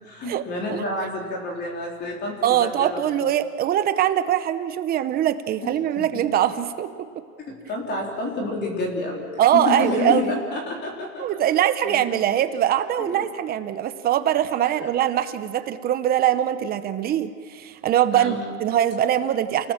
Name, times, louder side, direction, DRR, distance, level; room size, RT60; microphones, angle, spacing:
voice 1, 0.0-3.1 5.6-5.7 6.0-6.1 7.5-11.2 11.9-12.2 13.0-13.2 14.8-14.9 18.1-18.4, left 2 dB, 25° left, -1 dB, 3.8 m, -29 dB
voice 2, 2.4-7.1 9.4-10.3 11.2-19.7, right 11 dB, 20° right, 11 dB, 0.8 m, -22 dB
30.0 x 19.0 x 7.4 m, 2.3 s
supercardioid pair, 145°, 44 cm